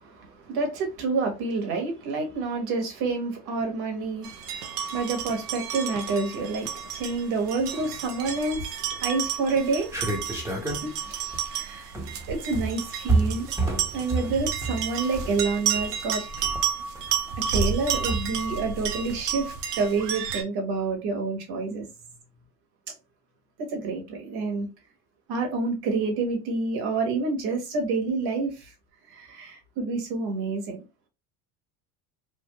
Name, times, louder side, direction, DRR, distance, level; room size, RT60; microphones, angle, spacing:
voice 1, 0.0-4.6 4.8-9.9 10.8-11.9 12.3-13.5 13.9-16.3 17.5-21.9 22.9-23.0 23.6-24.7 25.3-28.7 29.1-30.8, right 3 dB, 55° right, 1.4 m, -28 dB
sound 1, 4.2-20.4, right 7 dB, 85° right, 0.7 m, -32 dB
sound 2, 8.4-8.8 9.2-9.3 9.5-18.2, right 2 dB, 5° right, 0.9 m, -30 dB
3.4 x 2.3 x 2.3 m
hypercardioid pair, 80°, 45 cm